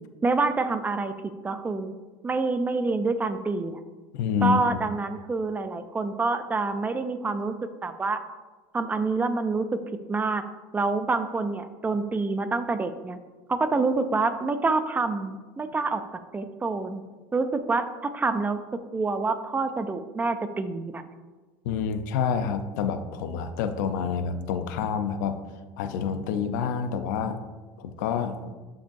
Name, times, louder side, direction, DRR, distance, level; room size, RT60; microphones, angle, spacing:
voice 1, 0.2-1.1 1.4-1.9 2.2-3.8 4.4-7.5 7.8-8.2 8.7-9.8 10.1-10.4 10.7-13.2 13.5-16.0 16.3-17.0 17.3-18.6 18.9-21.0, right 3 dB, 15° right, 10 dB, 0.5 m, -27 dB
voice 2, 4.1-4.8 21.6-25.4 25.8-27.4 27.8-28.5, left 6 dB, 85° left, 9 dB, 0.6 m, -28 dB
11.0 x 5.2 x 2.6 m, 1.3 s
supercardioid pair, 125°, 10 cm